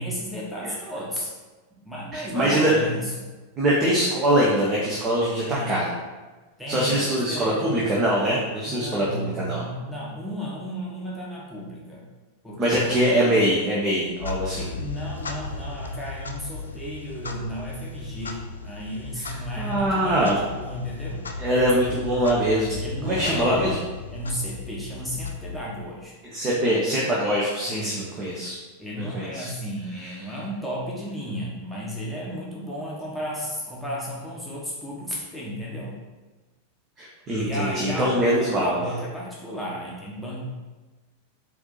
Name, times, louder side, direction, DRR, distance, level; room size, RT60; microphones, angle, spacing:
voice 1, 0.0-1.3 1.8-3.3 5.3-5.8 6.6-7.7 8.6-12.0 12.4-13.0 14.8-21.3 22.8-23.6 24.1-26.1 27.7-28.1 28.8-36.0 37.4-40.5, equal, ahead, -6 dB, 1.0 m, -33 dB
voice 2, 2.1-2.7 3.6-5.9 6.7-9.7 12.6-14.7 19.2-20.4 21.4-23.8 26.3-28.6 29.0-29.5 37.0-38.8, right 1 dB, 25° right, -5 dB, 0.8 m, -23 dB
Clock, 14.0-26.0, left 4 dB, 75° left, 0.4 m, -36 dB
4.5 x 2.8 x 3.9 m, 1.2 s
figure-of-eight pair, 90°, 0 cm